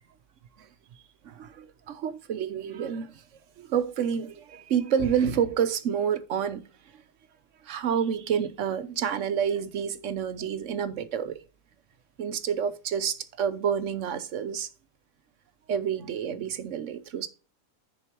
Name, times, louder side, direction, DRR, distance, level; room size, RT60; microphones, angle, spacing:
voice 1, 1.2-3.2 3.6-6.6 7.6-11.4 12.2-14.7 15.7-17.3, right 8 dB, 65° right, 1.1 m, -29 dB
10.0 x 4.5 x 4.5 m
omnidirectional pair, 1.5 m